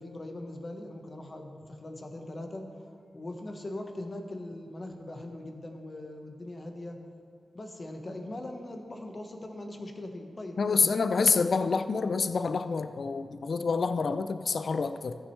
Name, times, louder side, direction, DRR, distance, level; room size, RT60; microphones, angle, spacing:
voice 1, 0.0-2.7 3.1-7.0 7.5-11.9, left 1 dB, 40° left, 3 dB, 1.1 m, -41 dB
voice 2, 10.6-15.2, left 4 dB, 65° left, 10 dB, 0.3 m, -27 dB
14.5 x 6.3 x 3.2 m, 2.4 s
cardioid pair, 65°, 0 cm